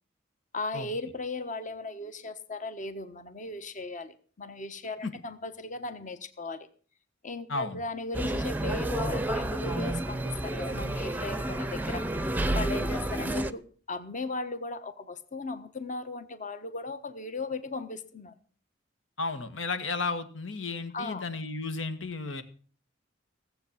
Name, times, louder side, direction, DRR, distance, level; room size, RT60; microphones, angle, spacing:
voice 1, 0.5-6.7 7.2-12.1 12.5-18.3 20.9-21.2, left 2 dB, 40° left, 10 dB, 1.2 m, -37 dB
voice 2, 7.5-7.8 19.2-22.4, left 3 dB, 85° left, 10 dB, 1.7 m, -33 dB
sound 1, 8.1-13.5, right 1 dB, 10° right, 0.6 m, -30 dB
17.5 x 7.9 x 7.3 m, 0.43 s
head